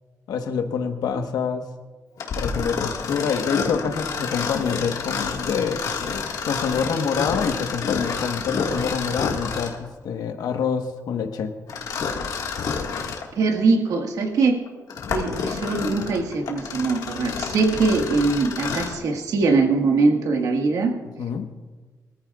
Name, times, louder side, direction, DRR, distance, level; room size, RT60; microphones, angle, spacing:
voice 1, 0.3-1.7 2.3-5.8 6.5-11.5 21.2-21.5, left 6 dB, 85° left, 6 dB, 1.2 m, -26 dB
Mechanisms, 2.2-9.9 11.7-13.3 13.9-14.0 14.7-19.0, left 5 dB, 70° left, 1.7 m, -29 dB
voice 2, 13.3-14.6 15.1-20.9, right 3 dB, 70° right, 3 dB, 1.6 m, -22 dB
24.5 x 14.0 x 2.4 m, 1.3 s
wide cardioid pair, 165°, 6 cm